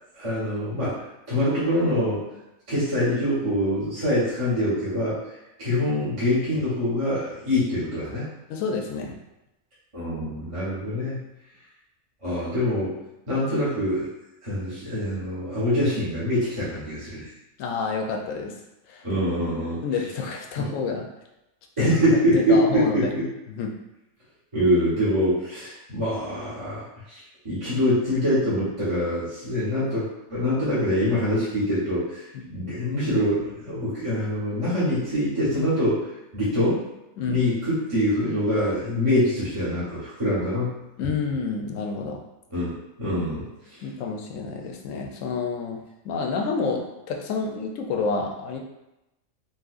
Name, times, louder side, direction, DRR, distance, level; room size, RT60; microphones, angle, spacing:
voice 1, 0.1-2.2 2.7-5.2 5.6-8.3 9.9-11.2 12.2-13.0 13.3-14.1 14.4-17.3 19.0-19.8 20.6-20.7 21.8-23.3 24.5-27.2 27.4-32.2 32.5-36.0 36.3-36.8 37.2-40.8 42.5-43.4 43.7-43.8, equal, 25° right, -12 dB, 1.0 m, -24 dB
voice 2, 8.5-9.1 17.6-18.6 18.9-19.0 19.8-21.1 21.8-21.9 22.3-23.1 23.5-23.8 32.3-32.4 37.2-37.5 41.0-42.2 43.8-48.6, left 4 dB, 75° left, 1 dB, 0.9 m, -29 dB
4.0 x 2.4 x 2.4 m, 0.92 s
omnidirectional pair, 1.4 m